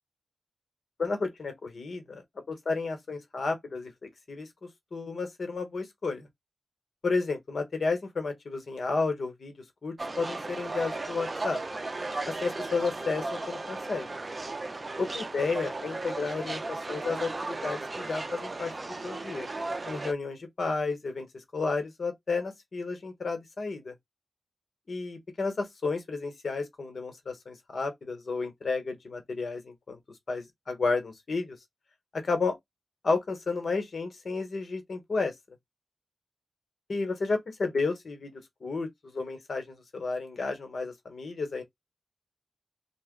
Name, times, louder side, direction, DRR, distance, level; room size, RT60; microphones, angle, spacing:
voice 1, 1.0-4.5 4.9-6.3 7.0-9.5 9.8-11.6 12.3-14.2 15.1-19.5 19.9-23.9 24.9-30.0 30.3-31.6 32.1-32.6 33.0-35.3 36.9-38.3 38.6-41.6, left 4 dB, 60° left, 1.2 m, -32 dB
sound 1, 10.0-20.1, right 2 dB, 35° right, 0.5 m, -36 dB
3.0 x 2.4 x 3.7 m
cardioid pair, 75°, 0 cm